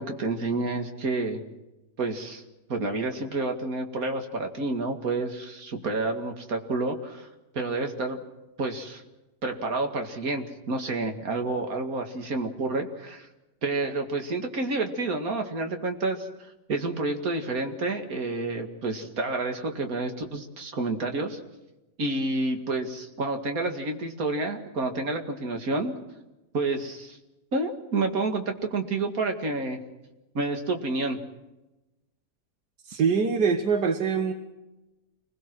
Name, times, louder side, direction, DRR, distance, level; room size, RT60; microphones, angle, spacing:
voice 1, 0.0-1.4 2.0-2.4 2.7-7.3 7.5-8.2 8.6-9.0 9.4-13.3 13.6-16.3 16.7-21.4 22.0-25.9 26.5-27.2 27.5-29.8 30.3-31.2, right 3 dB, 55° right, 4 dB, 2.6 m, -29 dB
voice 2, 32.9-34.3, right 5 dB, 80° right, 7 dB, 1.8 m, -24 dB
28.0 x 21.5 x 6.2 m, 1.0 s
omnidirectional pair, 1.8 m